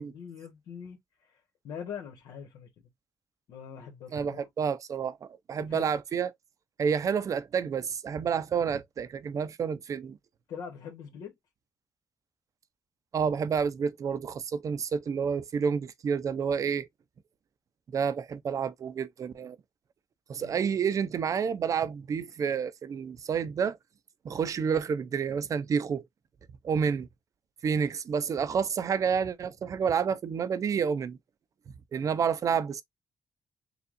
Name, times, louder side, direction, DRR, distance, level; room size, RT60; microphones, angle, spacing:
voice 1, 0.0-2.9 3.5-4.5 5.6-5.9 10.5-11.3 20.3-20.6 32.0-32.2, left 7 dB, 90° left, 1.5 m, -43 dB
voice 2, 4.1-6.3 6.8-10.2 13.1-16.9 17.9-19.6 20.3-23.8 24.2-26.0 26.6-27.1 27.6-31.2 31.9-32.8, right 6 dB, 55° right, 0.6 m, -29 dB
6.8 x 2.4 x 2.5 m
cardioid pair, 95°, 7 cm